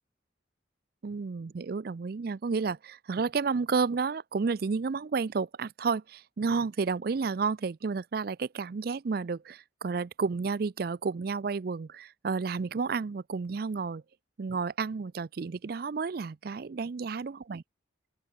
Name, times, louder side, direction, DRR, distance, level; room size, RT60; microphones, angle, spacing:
voice 1, 1.0-14.0 14.4-17.6, right 5 dB, 50° right, 0.4 m, -31 dB
open air
head